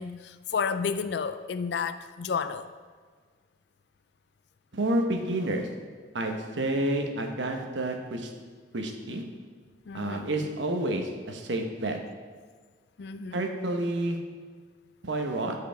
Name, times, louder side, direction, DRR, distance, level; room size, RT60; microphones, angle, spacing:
voice 1, 0.0-2.7 9.9-10.3 13.0-13.4, left 6 dB, 65° left, 11 dB, 0.4 m, -31 dB
voice 2, 4.7-5.7 6.1-8.3 8.7-9.2 9.9-12.0 13.3-14.2 15.0-15.5, right 1 dB, 85° right, 3 dB, 1.0 m, -29 dB
14.0 x 4.9 x 3.4 m, 1.5 s
head